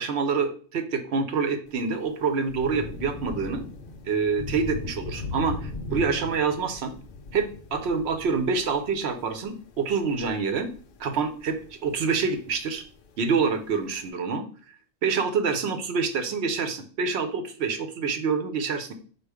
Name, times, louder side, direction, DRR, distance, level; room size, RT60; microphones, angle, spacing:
voice 1, 0.0-3.6 4.1-6.9 7.3-10.7 11.0-12.8 13.2-14.5 15.0-18.9, right 5 dB, 65° right, 7 dB, 0.8 m, -26 dB
Thunder / Rain, 1.7-14.1, left 3 dB, 55° left, 0.6 m, -39 dB
4.5 x 2.4 x 4.7 m, 0.43 s
omnidirectional pair, 1.3 m